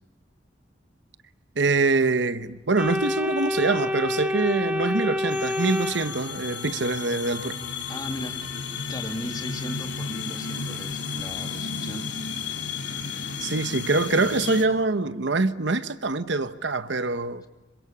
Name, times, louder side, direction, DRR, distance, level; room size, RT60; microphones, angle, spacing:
voice 1, 1.6-7.6 13.4-17.5, right 3 dB, 65° right, 1.0 m, -24 dB
Organ, 2.8-6.7, left 2 dB, 5° right, 2.6 m, -28 dB
sound 1, 5.3-14.6, left 5 dB, 70° left, 3.1 m, -33 dB
voice 2, 7.9-8.4 8.9-12.1, left 1 dB, 20° left, 2.4 m, -37 dB
26.5 x 24.5 x 8.6 m
head